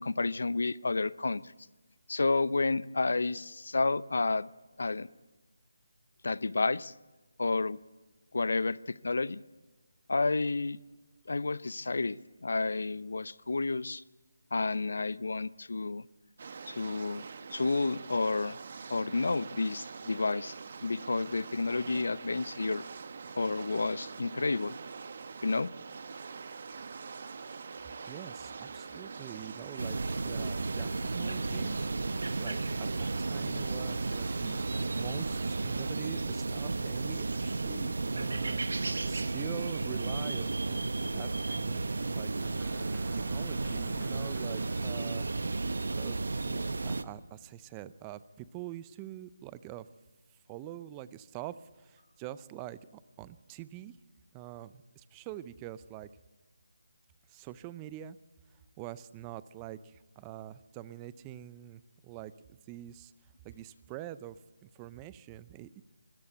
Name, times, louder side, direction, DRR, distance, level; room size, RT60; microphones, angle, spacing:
voice 1, 0.0-1.4 2.1-4.5 4.8-5.1 6.2-6.9 7.4-7.8 8.3-9.4 10.1-10.8 11.3-14.0 14.5-16.1 16.7-17.2 17.5-18.6 18.9-20.6 20.8-22.8 23.4-24.7 25.4-25.7, left 3 dB, 70° left, 19 dB, 0.6 m, -30 dB
sound 1, 16.4-35.9, right 5 dB, 50° right, 1.2 m, -44 dB
voice 2, 28.1-30.0 30.2-31.8 32.4-42.6 43.1-45.3 45.9-49.9 50.5-54.0 54.3-56.1 57.3-58.2 58.8-63.1 63.4-65.8, right 13 dB, 15° right, 17 dB, 0.5 m, -45 dB
sound 2, 29.8-47.0, right 3 dB, 70° right, 1.0 m, -33 dB
sound 3, 42.6-47.5, right 1 dB, ahead, 1.7 m, -57 dB
24.0 x 14.0 x 8.1 m, 1.2 s
figure-of-eight pair, 160°, 0 cm